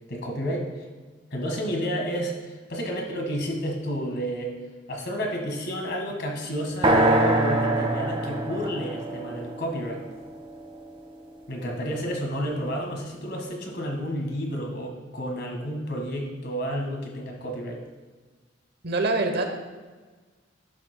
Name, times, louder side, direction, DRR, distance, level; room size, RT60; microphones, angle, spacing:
voice 1, 0.1-0.8 1.3-4.6 4.9-10.0 11.5-17.8, equal, 60° left, 1 dB, 1.6 m, -31 dB
sound 1, 6.8-10.8, right 1 dB, 30° right, 1.0 m, -24 dB
voice 2, 18.8-19.6, right 2 dB, 55° right, 5 dB, 0.9 m, -25 dB
11.5 x 7.1 x 2.2 m, 1.4 s
head